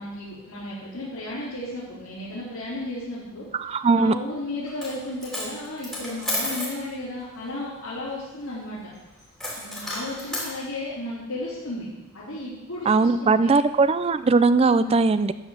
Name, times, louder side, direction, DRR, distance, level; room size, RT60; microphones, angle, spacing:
voice 1, 0.0-3.7 4.0-8.9 9.6-11.9 12.1-13.5 14.7-14.9, left 1 dB, 75° left, -12 dB, 4.0 m, -34 dB
voice 2, 3.5-4.1 12.9-15.3, right 4 dB, 25° right, 13 dB, 0.3 m, -19 dB
Coin (dropping), 4.7-5.0 5.2-6.8 9.4-10.5, left 1 dB, 5° left, 2.9 m, -31 dB
12.0 x 5.0 x 7.9 m, 1.1 s
head